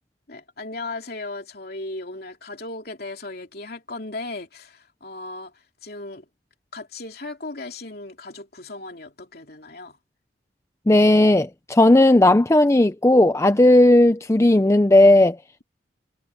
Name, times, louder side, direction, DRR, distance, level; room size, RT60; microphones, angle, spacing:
voice 1, 0.3-6.3 6.7-10.0, left 2 dB, 50° left, 3.1 m, -36 dB
voice 2, 10.9-15.4, left 1 dB, 15° left, 0.5 m, -15 dB
head